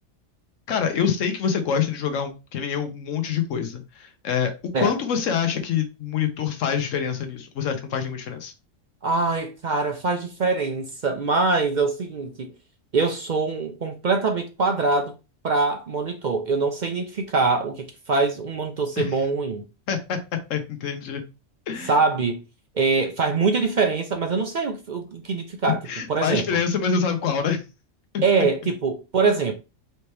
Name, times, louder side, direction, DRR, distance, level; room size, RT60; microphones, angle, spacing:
voice 1, 0.7-4.5 4.8-8.5 19.0-19.2 19.9-20.2 20.5-21.2 21.7-22.0 25.7-27.6 28.1-28.2, left 7 dB, 75° left, 1.1 m, -26 dB
voice 2, 9.0-12.5 12.9-15.1 15.4-19.6 21.8-22.4 22.7-25.8 26.1-26.6 28.2-29.5, right 4 dB, 60° right, 0.5 m, -23 dB
4.4 x 2.8 x 3.2 m
omnidirectional pair, 1.4 m